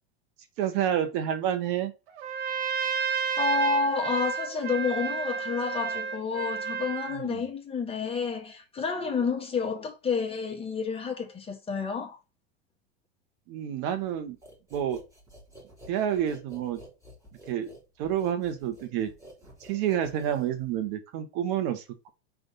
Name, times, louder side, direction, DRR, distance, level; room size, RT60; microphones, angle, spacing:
voice 1, 0.6-1.9 7.2-7.4 13.5-14.4 14.7-15.0 15.9-16.8 17.5-17.7 18.0-19.1 19.6-22.1, right 10 dB, 55° right, 1.2 m, -29 dB
Trumpet, 2.2-7.2, right 6 dB, 70° right, 1.4 m, -31 dB
voice 2, 3.4-12.2, left 5 dB, 15° left, 1.4 m, -29 dB
sound 1, 14.4-20.9, right 1 dB, 10° right, 3.5 m, -50 dB
5.3 x 3.5 x 5.4 m
supercardioid pair, 130°, 32 cm